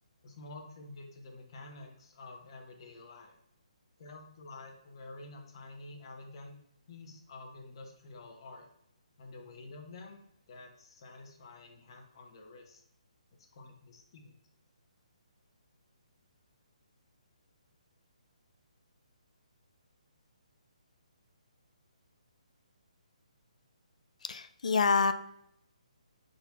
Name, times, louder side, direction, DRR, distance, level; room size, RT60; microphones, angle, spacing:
voice 1, 0.2-3.3 4.0-6.6 6.9-8.7 9.2-10.2 10.5-12.8 13.5-14.3, left 2 dB, 40° left, 3 dB, 1.1 m, -49 dB
voice 2, 24.2-25.1, left 5 dB, 65° left, 11 dB, 0.5 m, -27 dB
5.6 x 4.0 x 4.6 m, 0.76 s
hypercardioid pair, 165°, 4 cm